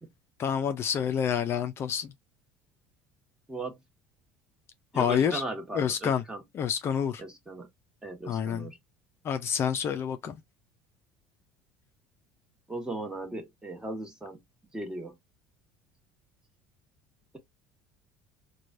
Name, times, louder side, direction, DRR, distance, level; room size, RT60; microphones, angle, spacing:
voice 1, 0.4-2.1 4.9-5.4 5.7-6.2 6.5-7.2 8.3-8.7 9.2-10.4, left 8 dB, 45° left, 0.5 m, -28 dB
voice 2, 4.9-6.4 7.2-7.7 8.0-8.8 12.7-14.4 14.7-15.2, right 2 dB, 10° right, 1.3 m, -37 dB
3.0 x 2.3 x 2.5 m
hypercardioid pair, 80°, 6 cm